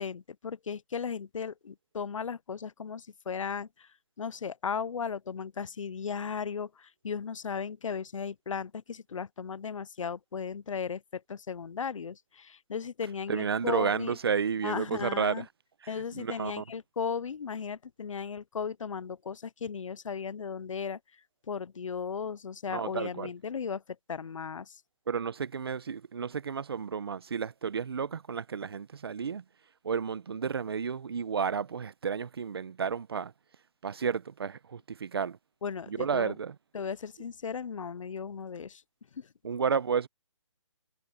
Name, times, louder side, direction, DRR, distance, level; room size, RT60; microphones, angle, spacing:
voice 1, 0.0-3.9 4.2-14.2 14.6-15.5 15.9-21.0 21.5-23.8 24.1-24.8 35.6-36.3 36.7-38.8 39.1-39.3, left 6 dB, 75° left, 0.6 m, -36 dB
voice 2, 13.3-15.4 15.8-16.6 22.7-23.3 25.1-29.4 29.8-33.3 33.8-35.4 35.9-36.5 39.4-40.1, right 6 dB, 50° right, 1.0 m, -32 dB
hypercardioid pair, 175°, 17 cm